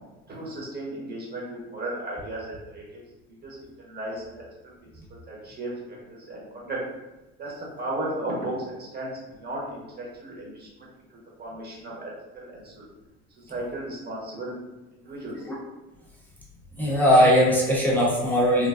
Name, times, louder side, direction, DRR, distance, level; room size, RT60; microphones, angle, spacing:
voice 1, 0.3-2.8 3.4-4.4 4.8-6.8 7.4-9.1 9.4-12.8 13.4-14.6 14.9-15.5, right 1 dB, 30° right, -4 dB, 1.1 m, -35 dB
voice 2, 16.8-18.7, equal, 5° left, -6 dB, 0.7 m, -19 dB
3.3 x 2.2 x 2.4 m, 1.1 s
supercardioid pair, 85°, 34 cm